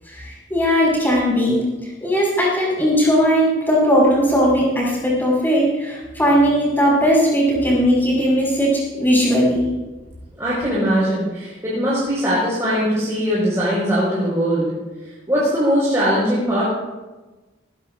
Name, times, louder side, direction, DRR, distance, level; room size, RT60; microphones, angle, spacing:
voice 1, 0.1-1.6 2.0-9.7, equal, 10° left, -4 dB, 5.8 m, -18 dB
voice 2, 10.4-14.7 15.0-16.6, equal, 15° right, -9 dB, 5.0 m, -20 dB
19.5 x 15.5 x 2.6 m, 1.2 s
head